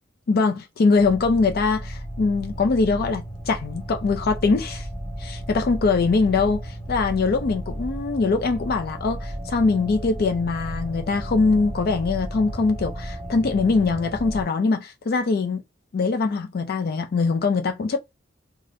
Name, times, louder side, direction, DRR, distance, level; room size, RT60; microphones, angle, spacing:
voice 1, 0.3-4.9 5.2-15.6 15.9-18.0, left 4 dB, 50° left, 0.4 m, -22 dB
sound 1, 1.0-14.4, equal, 5° left, 0.9 m, -34 dB
3.3 x 2.4 x 2.6 m
head